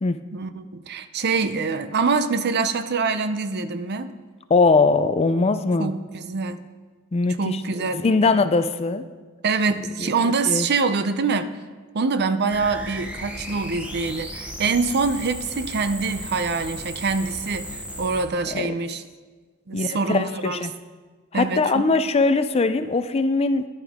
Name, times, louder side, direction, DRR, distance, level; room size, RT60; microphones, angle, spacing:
voice 1, 0.3-4.1 5.8-6.6 7.4-8.4 9.4-11.5 11.9-19.0 19.7-20.7 21.3-21.8, right 4 dB, 50° right, 11 dB, 0.6 m, -25 dB
voice 2, 4.5-5.9 7.1-7.6 8.0-9.0 10.0-10.7 18.5-18.7 19.7-20.7 21.3-23.7, left 3 dB, 30° left, 11 dB, 0.4 m, -21 dB
sound 1, 12.5-18.3, equal, 5° right, 0.9 m, -35 dB
13.5 x 10.5 x 3.6 m, 1.4 s
head